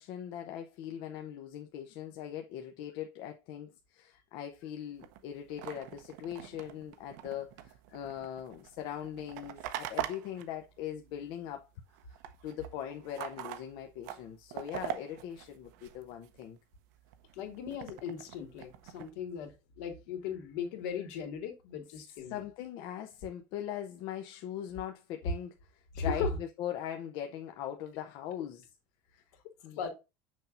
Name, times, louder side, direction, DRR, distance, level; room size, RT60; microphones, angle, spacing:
voice 1, 0.0-11.7 12.4-16.6 22.0-28.7 29.1-29.2 29.6-29.8, left 10 dB, 65° left, 0.8 m, -41 dB
sound 1, 5.0-11.6 11.8-16.4 16.9-19.1, right 11 dB, 80° right, 0.8 m, -43 dB
voice 2, 17.3-22.4 25.9-26.3 29.8-29.9, left 6 dB, 80° left, 2.3 m, -37 dB
6.4 x 5.7 x 2.6 m
supercardioid pair, 135°, 9 cm